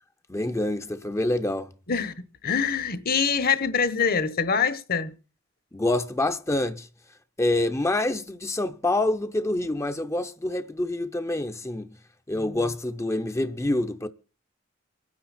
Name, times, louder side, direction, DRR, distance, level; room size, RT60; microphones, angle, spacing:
voice 1, 0.3-1.7 5.7-6.9 7.4-12.0 12.3-14.1, left 1 dB, 15° left, 0.6 m, -26 dB
voice 2, 2.4-5.1, left 6 dB, 50° left, 1.2 m, -24 dB
24.5 x 9.7 x 4.3 m
head